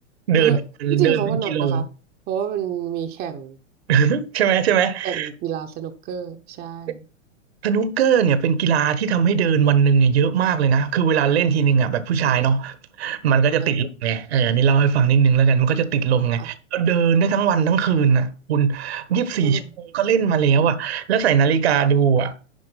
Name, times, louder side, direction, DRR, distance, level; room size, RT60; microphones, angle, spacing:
voice 1, 0.3-1.8 3.9-5.3 7.6-19.6 19.9-22.3, right 7 dB, 55° right, 1.4 m, -19 dB
voice 2, 0.9-1.8 2.3-3.6 5.0-7.0 13.6-13.7 16.4-16.5 19.3-19.7, right 9 dB, 25° right, 0.9 m, -28 dB
11.0 x 4.6 x 5.6 m
figure-of-eight pair, 105°, 37 cm